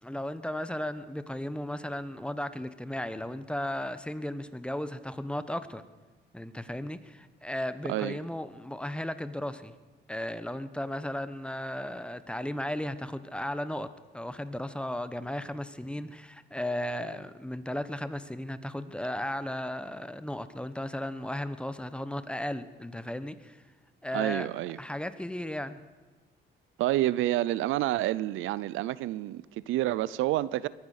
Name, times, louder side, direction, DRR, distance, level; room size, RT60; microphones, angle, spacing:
voice 1, 0.0-5.8 6.3-9.7 10.1-13.9 14.1-23.6 24.0-24.5 24.8-25.8, left 1 dB, 5° left, 0.9 m, -35 dB
voice 2, 24.1-24.8 26.8-30.7, right 15 dB, 90° right, 0.5 m, -28 dB
22.5 x 9.6 x 6.5 m
cardioid pair, 90°, 20 cm